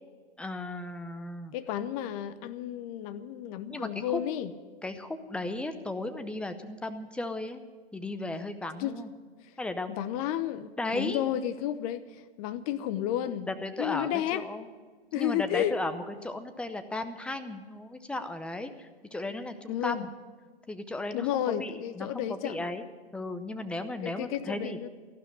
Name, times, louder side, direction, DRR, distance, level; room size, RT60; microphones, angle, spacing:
voice 1, 0.4-1.5 3.7-4.2 4.8-7.6 7.9-9.1 9.6-10.0 10.8-11.2 13.5-14.7 15.2-20.1 20.7-22.8 23.1-24.8, left 2 dB, 5° left, 9 dB, 0.7 m, -35 dB
voice 2, 1.5-4.5 8.8-9.0 9.9-13.5 13.8-14.4 15.1-15.7 19.7-20.1 21.1-22.7 24.0-24.9, left 11 dB, 35° left, 13 dB, 0.9 m, -32 dB
14.0 x 12.0 x 8.2 m, 1.4 s
hypercardioid pair, 125°, 32 cm